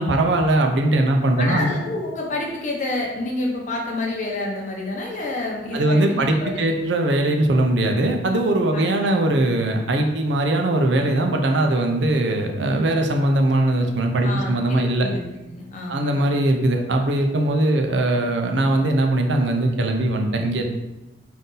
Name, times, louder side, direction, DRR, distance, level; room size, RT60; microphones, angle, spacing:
voice 1, 0.0-1.7 5.7-15.1 15.9-20.7, right 1 dB, 70° right, 3 dB, 0.5 m, -20 dB
voice 2, 1.4-6.7 8.7-9.2 14.2-15.2 15.5-16.2, left 2 dB, 45° left, -1 dB, 0.8 m, -29 dB
3.9 x 2.7 x 3.8 m, 0.98 s
head